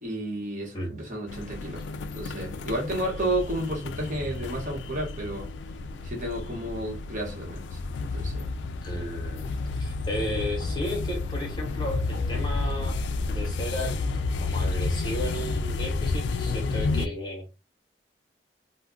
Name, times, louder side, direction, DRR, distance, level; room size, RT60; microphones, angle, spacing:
voice 1, 0.0-1.8 2.1-5.5 6.0-7.8 8.1-8.5 10.2-10.4, right 1 dB, 45° right, 1.0 m, -32 dB
sound 1, 1.3-17.1, left 3 dB, 80° left, 0.3 m, -31 dB
voice 2, 8.8-13.0 13.3-17.5, equal, 25° left, 0.9 m, -34 dB
2.3 x 2.1 x 3.6 m
head